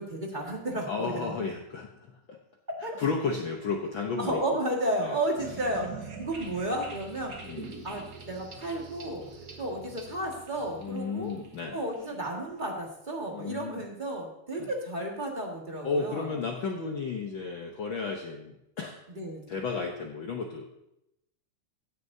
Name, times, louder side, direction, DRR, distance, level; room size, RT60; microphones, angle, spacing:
voice 1, 0.0-1.5 2.8-3.0 4.2-7.3 7.8-9.3 9.6-11.3 11.7-16.3 19.1-19.5, right 1 dB, 20° right, -1 dB, 1.3 m, -33 dB
voice 2, 0.9-2.4 3.0-4.4 5.0-5.2 7.4-7.7 10.8-11.8 13.3-13.8 14.6-14.7 15.8-19.0 19.5-20.7, left 4 dB, 70° left, 1 dB, 1.1 m, -33 dB
sound 1, 5.4-12.9, right 4 dB, 45° right, 1.1 m, -45 dB
16.5 x 9.7 x 2.7 m, 0.83 s
omnidirectional pair, 3.4 m